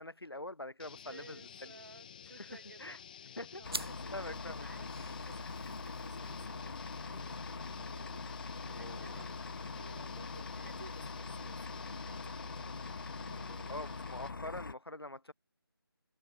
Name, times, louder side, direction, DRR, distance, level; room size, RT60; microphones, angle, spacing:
voice 1, 0.0-1.7 2.4-3.0 3.4-3.6 4.1-4.7 8.7-9.2 13.7-15.3, left 1 dB, 75° left, 2.8 m, -44 dB
sound 1, 0.8-14.5, left 8 dB, 20° left, 1.7 m, -52 dB
voice 2, 0.9-3.0 3.2-4.9 5.2-6.7 7.1-8.2 8.7-9.4 9.8-13.0 13.2-14.1, right 3 dB, 45° right, 3.2 m, -57 dB
sound 2, 3.6-14.7, left 4 dB, 55° left, 0.4 m, -43 dB
sound 3, 3.6-12.6, right 2 dB, 70° right, 4.6 m, -51 dB
figure-of-eight pair, 160°, 13 cm